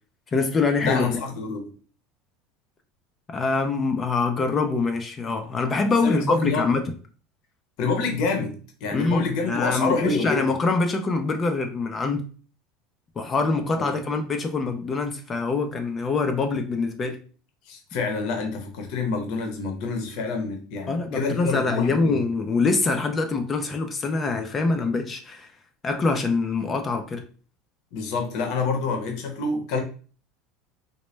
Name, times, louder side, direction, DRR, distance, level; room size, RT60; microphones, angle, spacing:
voice 1, 0.3-1.1 3.3-6.8 8.9-12.2 13.2-17.2 20.9-25.5 25.8-27.2, left 3 dB, 20° left, 0.4 m, -24 dB
voice 2, 0.8-1.7 6.0-6.7 7.8-10.6 13.8-13.9 17.7-22.2 27.9-29.8, left 4 dB, 55° left, 0.7 m, -27 dB
4.0 x 2.1 x 3.1 m
cardioid pair, 165°, 0 cm